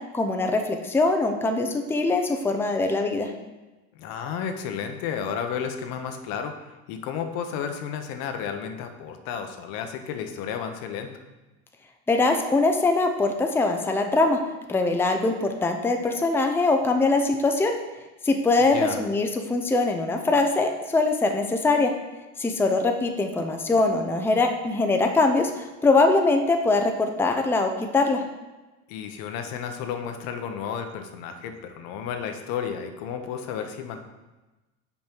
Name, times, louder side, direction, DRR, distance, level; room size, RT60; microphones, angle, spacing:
voice 1, 0.1-3.3 12.1-14.4 14.7-17.7 18.2-21.9 22.4-28.2, left 3 dB, 5° left, 4 dB, 0.5 m, -22 dB
voice 2, 3.9-11.1 18.7-19.0 28.9-34.0, left 7 dB, 75° left, 6 dB, 0.9 m, -32 dB
5.5 x 5.3 x 4.5 m, 1.1 s
supercardioid pair, 110°, 35 cm